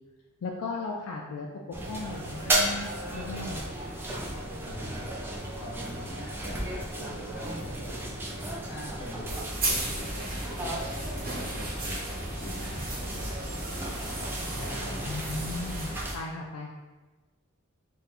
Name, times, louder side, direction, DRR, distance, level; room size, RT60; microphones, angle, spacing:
voice 1, 0.4-3.6 15.0-16.7, left 3 dB, 75° left, -1 dB, 0.3 m, -36 dB
sound 1, 1.7-16.1, right 1 dB, 10° right, 0.3 m, -35 dB
voice 2, 4.6-5.3 5.6-8.0 8.6-9.3 9.6-14.0 14.6-15.1, left 1 dB, 45° left, -4 dB, 0.8 m, -43 dB
sound 2, 9.3-16.2, right 1 dB, 45° right, 0.8 m, -35 dB
2.6 x 2.2 x 4.1 m, 1.2 s
head